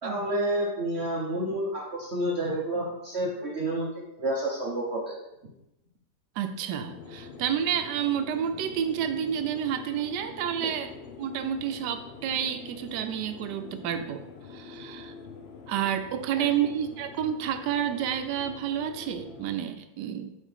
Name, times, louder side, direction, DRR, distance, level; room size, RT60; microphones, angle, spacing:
voice 1, 0.0-3.9 4.2-5.1 16.3-16.4, right 1 dB, 45° right, -3 dB, 1.1 m, -29 dB
voice 2, 6.4-10.9 11.2-14.2 14.5-15.1 15.7-20.4, right 9 dB, 85° right, 8 dB, 1.2 m, -30 dB
sound 1, 6.9-19.5, left 5 dB, 60° left, 0.7 m, -45 dB
5.1 x 3.9 x 5.6 m, 0.89 s
omnidirectional pair, 1.8 m